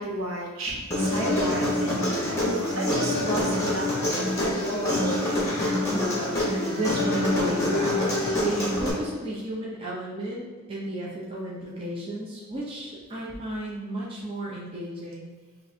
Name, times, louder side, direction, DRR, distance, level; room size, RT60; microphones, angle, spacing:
voice 1, 0.0-5.3, right 1 dB, 65° right, -3 dB, 0.9 m, -32 dB
Human voice, 0.9-8.9, left 1 dB, 15° left, 1.1 m, -26 dB
voice 2, 5.8-8.0 8.4-15.3, right 1 dB, 25° right, -5 dB, 0.6 m, -33 dB
6.1 x 2.6 x 2.7 m, 1.4 s
head